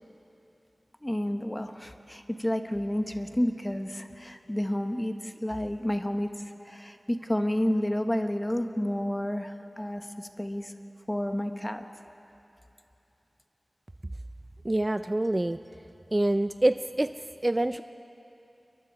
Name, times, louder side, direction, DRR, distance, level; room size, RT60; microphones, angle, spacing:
voice 1, 1.0-10.7 11.1-11.8, left 1 dB, 15° left, 6 dB, 1.2 m, -30 dB
voice 2, 14.6-15.6 16.1-17.1 17.4-17.8, right 1 dB, 25° right, 10 dB, 0.4 m, -25 dB
29.5 x 22.5 x 4.8 m, 2.9 s
wide cardioid pair, 75°, 0 cm